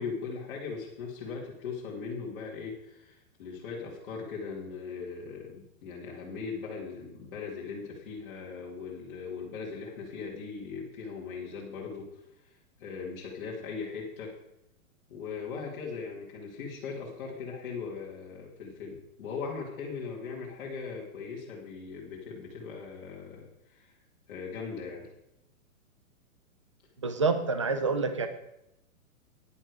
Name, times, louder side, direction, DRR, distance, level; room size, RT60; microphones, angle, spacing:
voice 1, 0.0-14.3 15.1-23.9 24.3-25.1, left 5 dB, 40° left, -5 dB, 2.3 m, -39 dB
voice 2, 27.0-28.3, right 4 dB, 25° right, 9 dB, 0.4 m, -27 dB
10.5 x 10.5 x 4.8 m, 0.84 s
hypercardioid pair, 170°, 43 cm